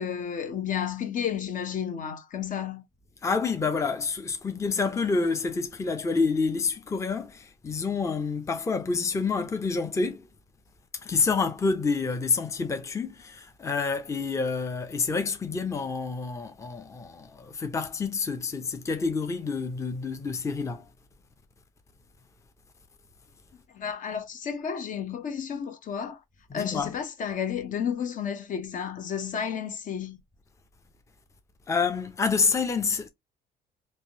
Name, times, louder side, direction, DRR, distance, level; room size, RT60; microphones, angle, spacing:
voice 1, 0.0-2.8 23.7-26.2 26.5-30.2, left 8 dB, 50° left, 0.8 m, -32 dB
voice 2, 3.2-10.3 10.9-20.9 26.5-26.9 31.7-33.1, left 4 dB, 15° left, 0.6 m, -28 dB
3.4 x 2.7 x 2.8 m
cardioid pair, 110°, 17 cm